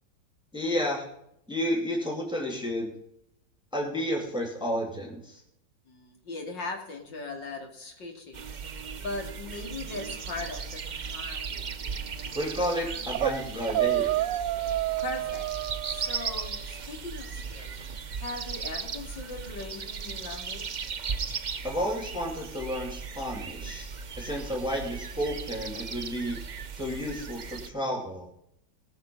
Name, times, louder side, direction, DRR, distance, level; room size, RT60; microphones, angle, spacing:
voice 1, 0.5-1.1 1.5-3.0 3.7-5.4 12.3-14.1 21.6-23.9 24.1-26.4 26.7-28.3, equal, ahead, -2 dB, 2.8 m, -31 dB
voice 2, 5.9-8.4 9.0-10.8 11.1-11.6 15.0-15.4 15.8-17.7 18.2-20.9, left 3 dB, 80° left, 2 dB, 3.4 m, -39 dB
sound 1, 8.3-27.7, right 6 dB, 50° right, 0.5 m, -37 dB
sound 2, 13.1-13.4 13.7-16.5, right 14 dB, 85° right, 1.3 m, -29 dB
19.5 x 6.7 x 5.4 m, 0.75 s
omnidirectional pair, 1.9 m